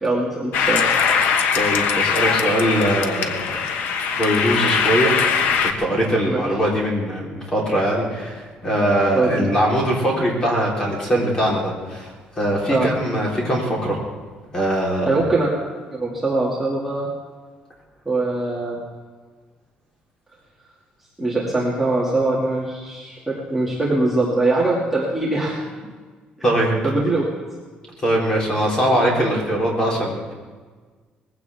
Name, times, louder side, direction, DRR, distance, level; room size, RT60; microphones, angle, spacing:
voice 1, 0.0-0.8 6.2-6.5 9.1-9.5 12.7-12.9 15.1-15.6 15.9-17.1 18.1-18.8 21.2-25.6 26.8-27.3, right 2 dB, 5° right, -7 dB, 2.3 m, -22 dB
sound 1, 0.5-5.7, left 6 dB, 75° left, 1.2 m, -21 dB
voice 2, 1.5-3.6 4.1-5.1 5.6-12.1 12.4-14.0 14.5-15.2 26.4-26.8 28.0-30.3, right 1 dB, 20° left, -3 dB, 3.8 m, -21 dB
20.5 x 16.0 x 3.6 m, 1.4 s
cardioid pair, 175°, 3 cm